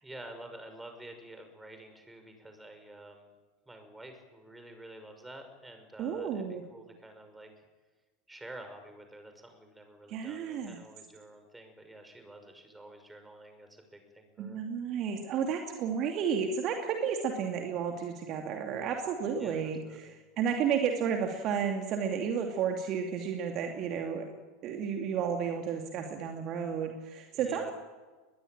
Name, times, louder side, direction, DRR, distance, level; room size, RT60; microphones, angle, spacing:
voice 1, 0.0-3.3 3.7-7.6 8.3-14.6 19.4-20.1 27.3-27.7, right 1 dB, 10° right, 6 dB, 5.9 m, -49 dB
voice 2, 6.0-6.6 10.1-10.8 14.4-24.3 24.6-27.7, right 7 dB, 40° right, 4 dB, 2.7 m, -32 dB
22.5 x 21.0 x 8.9 m, 1.3 s
figure-of-eight pair, 85°, 0 cm